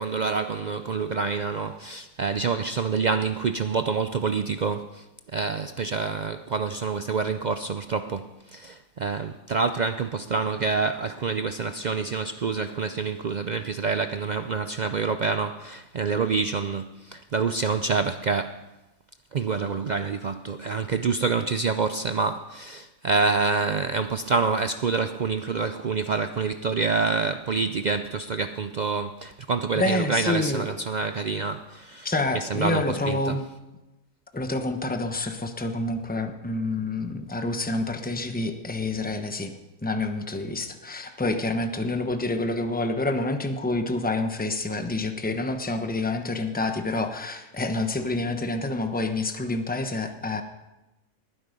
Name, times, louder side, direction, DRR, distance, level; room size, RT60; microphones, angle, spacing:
voice 1, 0.0-5.0 5.3-18.6 19.3-33.4, right 4 dB, 65° right, 0.4 m, -27 dB
voice 2, 29.7-30.6 32.0-33.4 34.3-39.5 39.8-50.4, left 2 dB, 10° left, 0.9 m, -28 dB
20.0 x 10.0 x 5.2 m
omnidirectional pair, 1.4 m